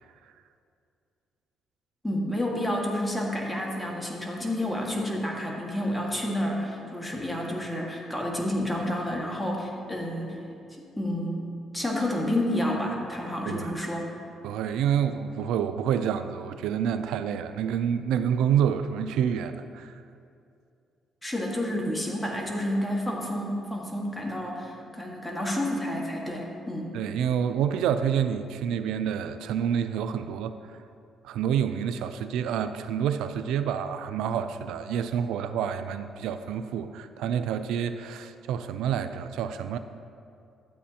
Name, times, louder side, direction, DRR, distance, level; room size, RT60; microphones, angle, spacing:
voice 1, 2.0-10.4 10.8-11.5 11.7-14.1 21.2-26.9, left 1 dB, 5° left, -2 dB, 1.6 m, -30 dB
voice 2, 14.4-19.9 26.9-30.8 31.2-39.8, right 8 dB, 90° right, 10 dB, 0.3 m, -28 dB
12.5 x 8.2 x 2.8 m, 2.5 s
cardioid pair, 90°, 0 cm